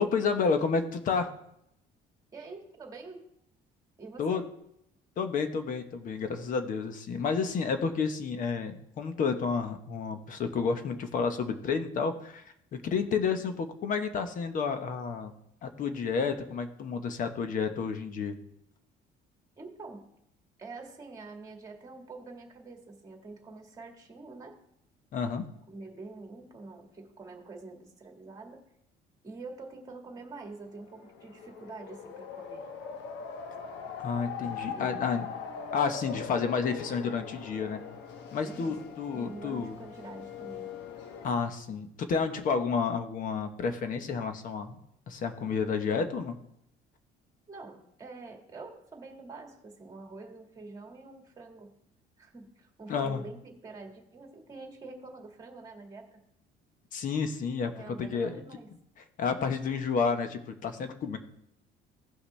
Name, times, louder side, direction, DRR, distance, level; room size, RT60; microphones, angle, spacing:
voice 1, 0.0-1.3 4.2-4.4 5.2-15.3 15.6-18.4 25.1-25.5 34.0-35.3 35.7-37.8 38.3-39.8 41.2-44.8 45.1-46.4 52.9-53.2 56.9-58.4 59.2-61.2, left 5 dB, 45° left, 8 dB, 1.0 m, -30 dB
voice 2, 2.3-3.2 4.0-4.4 19.6-20.0 20.6-24.6 25.7-28.6 29.2-32.7 34.5-35.2 38.4-38.8 39.1-40.7 47.5-51.7 52.2-56.2 57.7-58.7, right 3 dB, 20° right, 3 dB, 1.7 m, -46 dB
sound 1, 30.7-41.3, left 6 dB, 75° left, 1.1 m, -41 dB
16.5 x 5.7 x 3.3 m, 0.76 s
cardioid pair, 145°, 18 cm